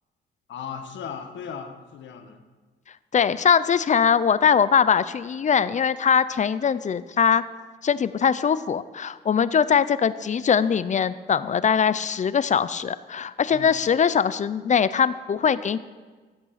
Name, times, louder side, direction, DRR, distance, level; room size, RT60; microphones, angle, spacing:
voice 1, 0.5-2.4 13.5-13.8, left 7 dB, 70° left, 5 dB, 1.3 m, -37 dB
voice 2, 3.1-7.4 7.8-15.8, left 7 dB, 40° left, 16 dB, 0.5 m, -21 dB
14.0 x 8.0 x 5.8 m, 1.4 s
cardioid pair, 90°, 20 cm